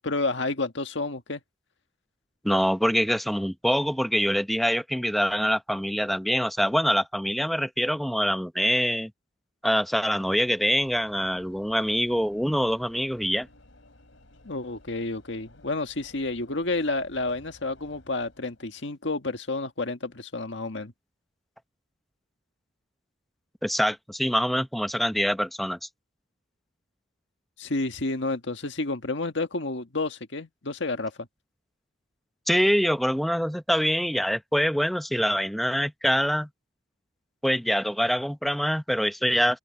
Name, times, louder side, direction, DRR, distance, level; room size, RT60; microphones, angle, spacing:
voice 1, 0.0-1.4 14.4-20.9 27.6-31.3, left 2 dB, 70° left, 1.7 m, -30 dB
voice 2, 2.4-9.1 9.6-13.5 23.6-25.8 32.5-36.5 37.4-39.6, equal, ahead, 0.7 m, -25 dB
Train / Engine / Alarm, 10.6-18.9, left 1 dB, 90° left, 4.1 m, -56 dB
open air
head